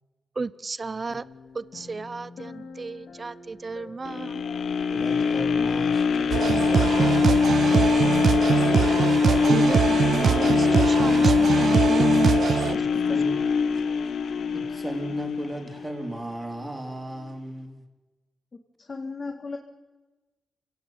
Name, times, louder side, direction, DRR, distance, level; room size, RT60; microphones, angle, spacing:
voice 1, 0.3-1.2 1.5-4.4 9.4-12.4 12.7-12.8, right 3 dB, 35° right, 17 dB, 1.0 m, -33 dB
sound 1, 1.1-6.5 6.9-7.0, left 4 dB, 70° left, 3.2 m, -47 dB
sound 2, 4.1-16.2 16.6-16.7, left 5 dB, 85° left, 1.5 m, -23 dB
voice 2, 4.9-8.3 12.8-13.8 14.5-17.8, right 1 dB, 20° right, 4 dB, 4.1 m, -37 dB
sound 3, 6.3-12.7, right 7 dB, 70° right, 0.9 m, -23 dB
voice 3, 18.8-19.6, left 4 dB, 40° left, 4 dB, 2.3 m, -35 dB
28.0 x 17.5 x 9.3 m, 1.2 s
cardioid pair, 90°, 0 cm